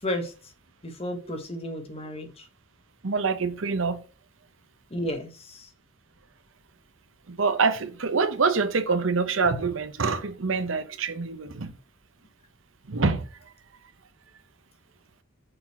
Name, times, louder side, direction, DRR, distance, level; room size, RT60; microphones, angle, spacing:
voice 1, 0.0-0.3 0.8-2.5 4.9-5.7, left 1 dB, 30° left, 1.3 m, -33 dB
voice 2, 3.0-4.0 7.3-11.7 12.9-13.3, right 4 dB, 85° right, 0.8 m, -25 dB
6.8 x 4.0 x 4.3 m
head